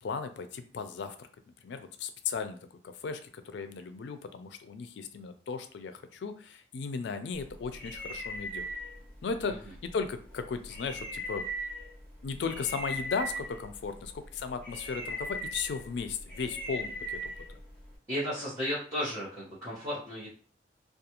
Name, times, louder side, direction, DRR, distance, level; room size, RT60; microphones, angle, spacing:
voice 1, 0.0-1.3 1.6-2.6 2.8-8.7 9.2-11.5 12.2-17.6, left 5 dB, 75° left, 9 dB, 0.4 m, -36 dB
sound 1, 7.3-18.0, equal, 10° left, 0.7 m, -40 dB
voice 2, 18.1-20.3, equal, 15° right, -11 dB, 0.9 m, -34 dB
2.4 x 2.3 x 2.9 m, 0.42 s
head